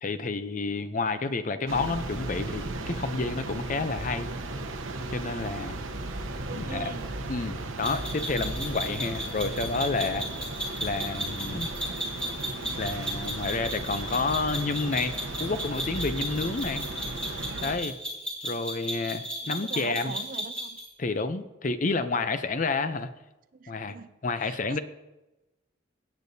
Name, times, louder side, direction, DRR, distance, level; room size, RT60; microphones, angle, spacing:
voice 1, 0.0-4.3 5.1-5.8 6.5-6.9 7.3-10.3 10.8-11.7 12.8-15.1 15.4-16.8 17.6-18.0 18.4-20.1 21.0-23.1 23.7-24.0 24.2-24.8, left 3 dB, 40° left, 11 dB, 0.5 m, -30 dB
voice 2, 1.1-1.7 6.4-7.1 19.4-20.8 23.5-24.1 24.4-24.8, right 4 dB, 45° right, 12 dB, 0.4 m, -42 dB
sound 1, 1.7-17.8, right 2 dB, 90° right, 0.9 m, -36 dB
sound 2, 7.8-20.9, equal, 5° left, 1.9 m, -35 dB
17.0 x 8.3 x 2.7 m, 1.0 s
head